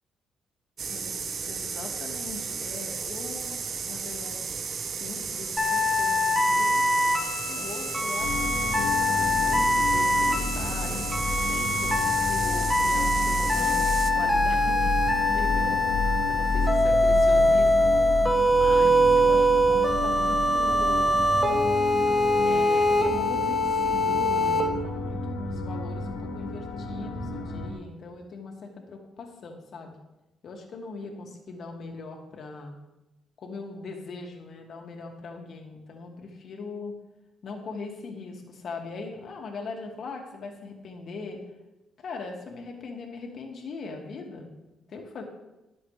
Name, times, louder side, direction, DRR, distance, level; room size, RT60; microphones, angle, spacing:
sound 1, 0.8-14.1, right 6 dB, 50° right, 0.9 m, -34 dB
voice 1, 0.9-4.5 5.0-6.9 7.5-18.0 18.5-21.3 22.4-30.0 30.4-32.8 33.4-36.9 37.4-41.4 42.0-44.5 44.9-45.2, left 3 dB, 60° left, 1 dB, 2.4 m, -40 dB
sound 2, 5.6-24.6, left 1 dB, 10° left, 1.8 m, -23 dB
sound 3, 8.2-27.7, left 2 dB, 85° left, 2.4 m, -31 dB
21.0 x 7.8 x 3.4 m, 1.0 s
cardioid pair, 90°, 0 cm